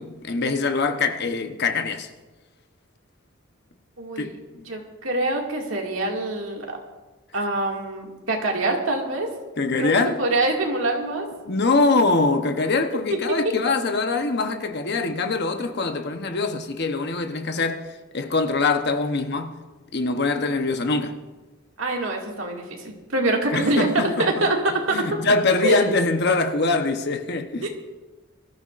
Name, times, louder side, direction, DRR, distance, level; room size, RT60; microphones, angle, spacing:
voice 1, 0.0-2.1 4.2-4.3 4.5-4.7 9.6-10.2 11.5-17.9 18.1-19.6 19.9-21.2 23.5-24.3 24.9-27.7, left 3 dB, 50° left, 0.9 m, -23 dB
voice 2, 4.0-4.4 4.7-6.6 7.3-9.3 9.8-11.3 21.8-23.9 24.2-24.6 24.9-25.0 25.6-25.9 27.6-27.7, right 2 dB, 70° right, 2.2 m, -25 dB
24.0 x 13.5 x 2.5 m
head